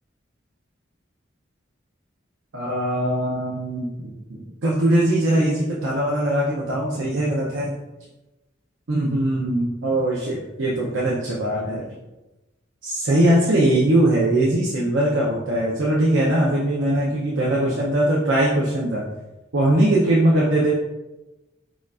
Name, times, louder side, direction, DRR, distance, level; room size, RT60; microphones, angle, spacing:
voice 1, 2.5-7.7 8.9-11.8 12.8-19.0 19.5-20.7, right 1 dB, 75° right, -5 dB, 0.6 m, -21 dB
5.0 x 2.4 x 2.4 m, 1.0 s
head